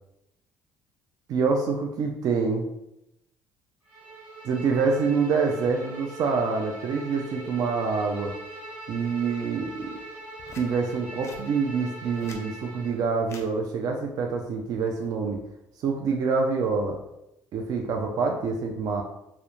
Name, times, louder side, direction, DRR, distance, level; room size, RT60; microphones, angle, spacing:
voice 1, 1.3-2.7 4.4-8.3 8.9-10.0 10.6-15.4 15.8-17.0 17.5-19.0, right 4 dB, 55° right, 2 dB, 0.3 m, -26 dB
Bowed string instrument, 3.9-13.0, right 2 dB, 15° right, 1.1 m, -41 dB
sound 1, 10.4-10.7 11.2-11.4 12.0-12.5 13.2-13.5 14.8-15.1, left 3 dB, 35° left, 0.4 m, -45 dB
2.4 x 2.1 x 2.9 m, 0.85 s
cardioid pair, 110°, 8 cm